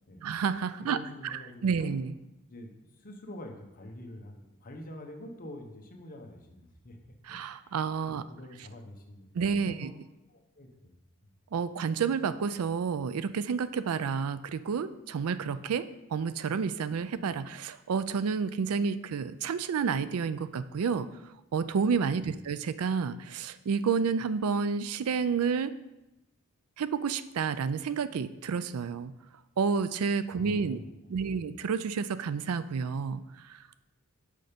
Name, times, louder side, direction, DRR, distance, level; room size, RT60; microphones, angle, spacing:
voice 1, 0.2-1.0 1.2-2.1 7.2-8.2 9.3-9.9 11.5-21.1 21.5-25.7 26.8-29.1 29.6-30.8 31.1-33.6, right 6 dB, 90° right, 14 dB, 0.4 m, -30 dB
voice 2, 0.8-2.0 2.5-7.0 7.3-7.7 8.1-9.9 10.3-11.0 11.2-11.3 22.2-22.4 30.3-31.4, left 1 dB, 40° left, 3 dB, 1.0 m, -46 dB
6.4 x 5.6 x 5.1 m, 0.96 s
head